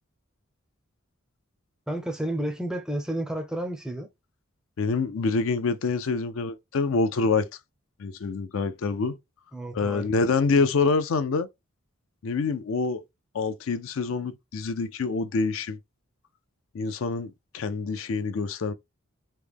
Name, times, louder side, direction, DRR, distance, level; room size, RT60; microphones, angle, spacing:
voice 1, 1.9-4.1 9.5-10.1 10.6-10.7, right 1 dB, 5° right, 0.4 m, -31 dB
voice 2, 4.8-7.5 8.0-9.2 9.7-11.5 12.2-13.0 13.3-15.8 16.7-18.7, left 4 dB, 70° left, 0.4 m, -26 dB
3.1 x 2.1 x 3.4 m
head